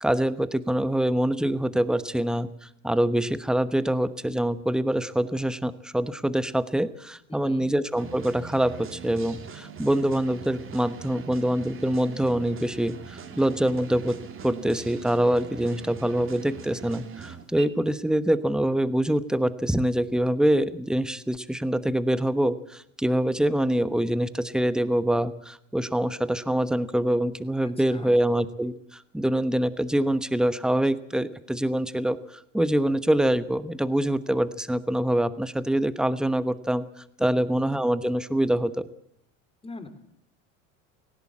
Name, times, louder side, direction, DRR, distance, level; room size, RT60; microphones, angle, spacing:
voice 1, 0.0-2.5 2.8-14.2 14.4-36.8 37.2-38.9, right 1 dB, ahead, 14 dB, 1.1 m, -25 dB
voice 2, 7.3-7.7 27.6-28.4 37.2-37.7 39.6-39.9, left 3 dB, 15° left, 9 dB, 3.3 m, -43 dB
sound 1, 7.9-17.6, right 6 dB, 35° right, 3.0 m, -42 dB
19.0 x 16.5 x 8.7 m, 0.74 s
hypercardioid pair, 95°, 38 cm